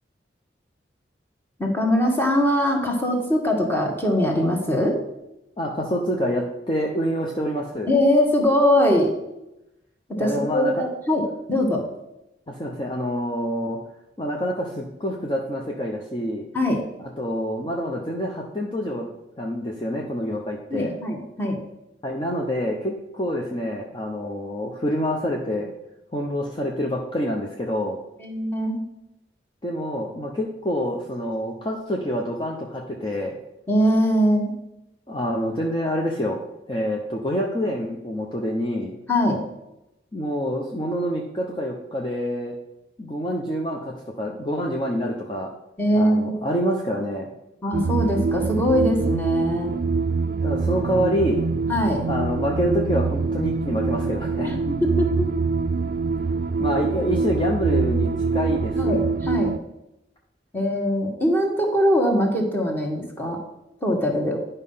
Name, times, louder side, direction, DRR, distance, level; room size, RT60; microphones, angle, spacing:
voice 1, 1.6-5.0 7.9-9.1 10.2-11.8 16.5-16.8 20.7-21.6 28.2-28.8 33.7-34.5 39.1-39.4 45.8-46.5 47.6-49.8 51.7-52.0 54.4-55.3 58.8-59.5 60.5-63.4 63.8-64.4, equal, 10° left, 1 dB, 1.5 m, -22 dB
voice 2, 5.6-7.9 10.1-10.8 12.5-13.8 14.2-16.5 17.0-19.1 19.4-20.9 22.0-25.7 26.1-28.0 29.6-33.4 35.1-36.4 36.7-38.9 40.1-42.5 43.0-45.5 45.9-47.3 50.4-51.4 52.1-54.5 56.6-58.9, equal, 25° left, 0 dB, 0.8 m, -27 dB
sound 1, 47.7-59.6, right 4 dB, 55° right, 0.3 m, -24 dB
10.5 x 5.5 x 5.6 m, 0.91 s
head